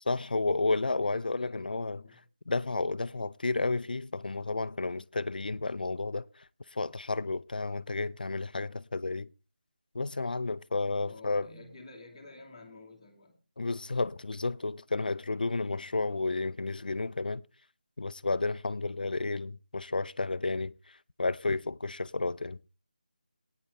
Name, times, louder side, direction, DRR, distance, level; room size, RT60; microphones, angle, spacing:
voice 1, 0.1-2.0 2.5-6.4 6.7-9.3 9.9-11.5 13.6-17.4 18.0-22.7, left 3 dB, 70° left, 0.5 m, -32 dB
voice 2, 1.0-1.7 2.0-2.2 11.0-13.4, left 2 dB, 10° left, 1.3 m, -50 dB
18.5 x 9.4 x 3.3 m
figure-of-eight pair, 175°, 5 cm